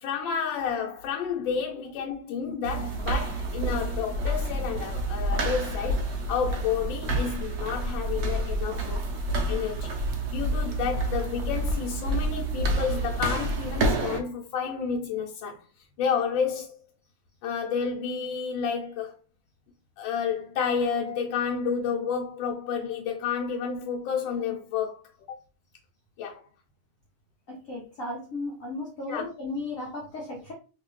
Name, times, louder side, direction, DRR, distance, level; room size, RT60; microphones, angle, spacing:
voice 1, 0.0-9.0 9.5-15.6 16.0-16.7 17.4-19.2 20.0-25.0 25.3-25.4 26.2-26.4 29.1-29.2, left 6 dB, 75° left, 1.3 m, -30 dB
sound 1, 2.6-14.2, right 1 dB, 65° right, 1.0 m, -29 dB
voice 2, 27.5-30.5, left 2 dB, 55° left, 0.9 m, -35 dB
3.2 x 2.7 x 3.0 m
omnidirectional pair, 2.2 m